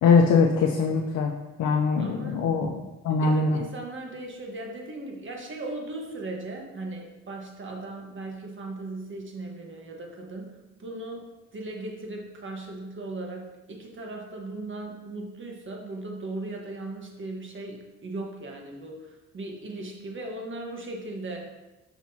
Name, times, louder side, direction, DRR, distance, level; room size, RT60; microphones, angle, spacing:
voice 1, 0.0-1.3 1.6-3.6, left 4 dB, 75° left, 0 dB, 0.7 m, -22 dB
voice 2, 2.0-2.4 3.2-11.2 11.5-21.5, right 2 dB, 40° right, 1 dB, 1.4 m, -37 dB
6.0 x 6.0 x 2.8 m, 1.1 s
cardioid pair, 90°, 30 cm